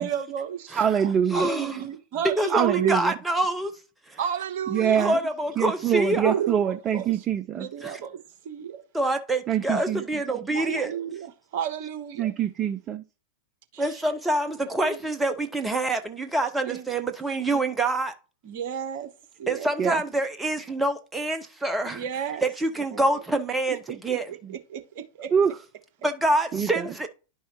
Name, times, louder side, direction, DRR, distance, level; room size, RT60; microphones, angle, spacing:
voice 1, 0.0-0.8 1.3-3.0 4.2-5.1 6.2-7.1 7.5-8.2 8.4-8.8 10.5-12.3 13.7-13.9 14.9-15.0 16.7-16.9 17.5-17.6 18.4-19.1 19.4-19.7 21.9-22.4 22.9-23.2 24.1-24.2 24.7-25.3, right 9 dB, 50° right, 1.0 m, -32 dB
voice 2, 0.7-1.5 2.5-3.1 4.7-5.2 5.6-7.7 9.5-10.2 12.2-13.0 19.8-20.0 25.3-25.6 26.5-26.9, right 8 dB, 25° right, 0.4 m, -24 dB
voice 3, 1.3-1.9 2.4-3.7 4.1-4.2 5.0-6.3 7.8-8.0 8.9-10.9 13.8-18.1 19.5-22.0 22.4-24.3 26.0-27.1, right 2 dB, 10° right, 0.8 m, -26 dB
10.5 x 5.6 x 3.0 m
figure-of-eight pair, 90°, 0 cm